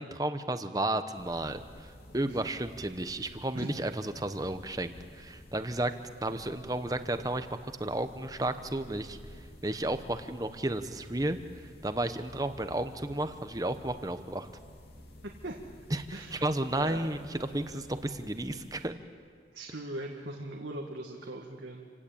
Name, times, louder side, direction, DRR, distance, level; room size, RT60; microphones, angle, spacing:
voice 1, 0.0-5.9 6.2-9.2 9.6-11.4 11.8-14.5 15.9-19.0, right 1 dB, 20° right, 9 dB, 1.0 m, -33 dB
sound 1, 1.1-18.9, left 1 dB, 60° left, 2.9 m, -52 dB
voice 2, 16.8-17.3 19.5-21.9, right 1 dB, 90° right, 0 dB, 2.0 m, -40 dB
28.0 x 17.5 x 8.7 m, 2.1 s
head